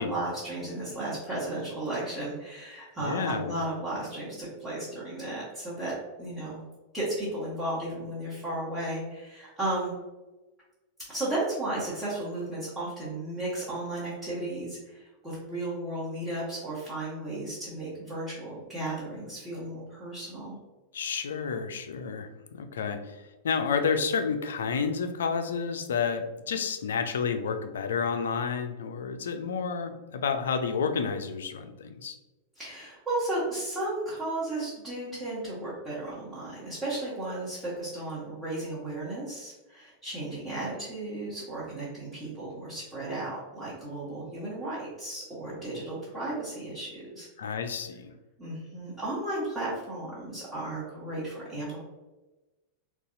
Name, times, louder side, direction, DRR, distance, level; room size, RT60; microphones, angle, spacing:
voice 1, 0.0-5.9 6.2-6.6 6.9-9.9 11.1-20.6 32.6-47.3 48.4-51.8, right 1 dB, 10° right, -10 dB, 1.1 m, -34 dB
voice 2, 3.0-3.5 20.9-32.2 47.4-48.1, left 6 dB, 65° left, 8 dB, 0.3 m, -30 dB
3.8 x 2.3 x 2.6 m, 1.1 s
figure-of-eight pair, 90°, 0 cm